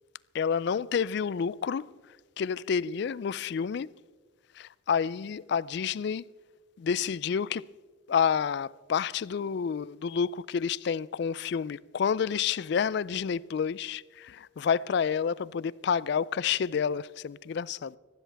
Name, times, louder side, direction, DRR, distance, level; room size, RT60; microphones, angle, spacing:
voice 1, 0.3-1.9 2.4-3.9 4.5-6.3 6.8-7.7 8.1-18.0, left 7 dB, 55° left, 0.3 m, -29 dB
18.5 x 15.0 x 3.4 m
head